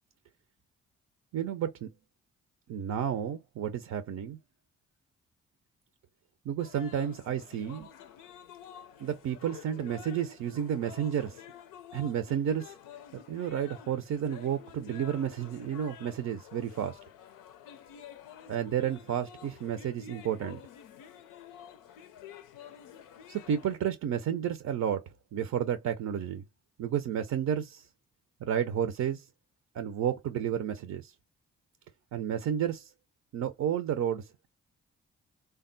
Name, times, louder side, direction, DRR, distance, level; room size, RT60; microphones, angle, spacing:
voice 1, 1.3-1.9 2.7-4.4 6.5-7.9 9.0-11.4 11.9-12.8 13.3-17.0 18.5-20.6 23.3-26.4 26.8-27.9 28.4-29.3 29.7-31.1 32.1-32.9 33.3-34.5, right 9 dB, 60° right, 0.5 m, -31 dB
sound 1, 6.6-23.8, left 9 dB, 90° left, 0.5 m, -50 dB
3.3 x 2.3 x 2.5 m
supercardioid pair, 45°, 31 cm